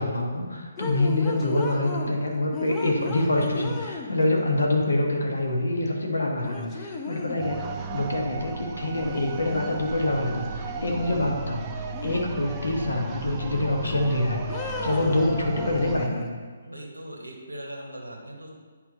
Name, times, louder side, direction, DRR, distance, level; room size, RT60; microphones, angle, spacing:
voice 1, 0.0-11.6 12.0-16.3, left 1 dB, 75° left, 0 dB, 1.4 m, -26 dB
sound 1, 0.8-2.2 2.5-4.4 5.9-6.0 6.4-7.5 8.9-9.9 10.2-11.4 11.9-12.8 13.2-14.1 14.5-16.3, left 3 dB, 20° left, 0.6 m, -36 dB
sound 2, 7.4-16.1, right 3 dB, 20° right, 0.5 m, -35 dB
voice 2, 16.6-18.5, right 1 dB, 85° right, 0 dB, 1.1 m, -39 dB
9.8 x 4.4 x 2.9 m, 1.5 s
figure-of-eight pair, 140°, 0 cm